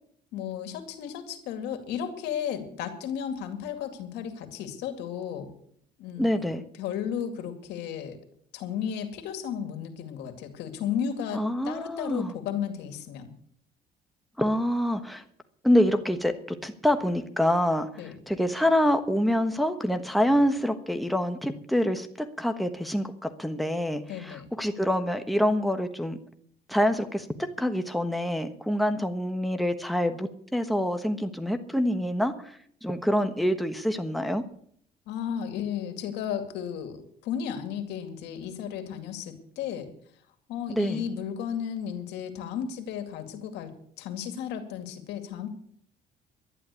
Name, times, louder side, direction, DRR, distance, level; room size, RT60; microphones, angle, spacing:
voice 1, 0.3-5.5 6.0-6.5 6.8-8.2 8.5-13.3 18.0-18.1 24.1-24.5 35.1-39.9 40.5-43.7 44.0-45.5, left 8 dB, 90° left, 8 dB, 2.3 m, -34 dB
voice 2, 6.2-6.6 11.3-12.3 14.4-15.2 15.6-17.9 18.3-26.2 26.7-34.4 40.7-41.0, equal, ahead, 7 dB, 1.3 m, -26 dB
12.0 x 10.5 x 8.3 m, 0.63 s
cardioid pair, 110°, 17 cm